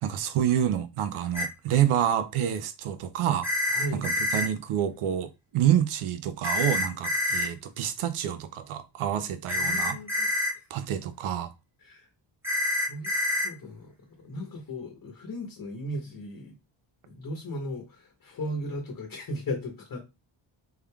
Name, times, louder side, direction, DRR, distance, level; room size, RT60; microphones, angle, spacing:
voice 1, 0.0-3.5 3.9-10.0 10.7-11.5, right 10 dB, 85° right, 0.7 m, -28 dB
sound 1, 1.3-1.5 3.4-4.5 6.4-7.5 9.5-10.5 12.4-13.5, left 1 dB, 5° right, 0.9 m, -27 dB
voice 2, 3.7-4.1 9.5-10.3 10.5-10.7 11.8-12.1 12.9-16.6 17.1-20.0, left 1 dB, 45° left, 0.9 m, -37 dB
3.6 x 3.3 x 2.2 m
wide cardioid pair, 130°, 49 cm